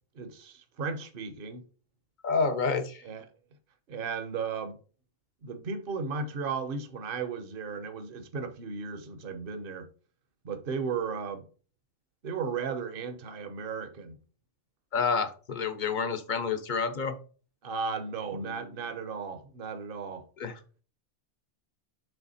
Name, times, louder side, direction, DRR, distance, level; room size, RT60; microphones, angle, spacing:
voice 1, 0.1-1.6 3.0-3.3 3.9-4.8 5.4-9.9 10.4-11.4 12.2-14.1 17.6-20.2, right 5 dB, 55° right, 1.0 m, -35 dB
voice 2, 2.2-3.0 14.9-17.2 20.4-20.6, left 5 dB, 45° left, 0.8 m, -29 dB
6.9 x 3.4 x 4.1 m
omnidirectional pair, 1.2 m